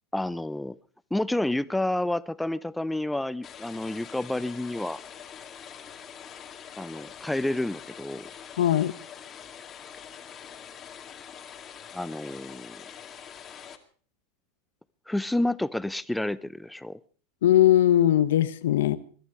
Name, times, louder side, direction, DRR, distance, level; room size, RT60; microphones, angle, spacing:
voice 1, 0.1-0.8 1.1-5.0 6.8-8.3 11.9-12.8 15.1-17.0, left 1 dB, 5° left, 0.7 m, -29 dB
sound 1, 3.4-13.8, left 8 dB, 30° left, 2.2 m, -44 dB
voice 2, 8.6-8.9 17.4-19.0, left 12 dB, 80° left, 1.2 m, -20 dB
22.0 x 11.5 x 4.9 m
hypercardioid pair, 110°, 0 cm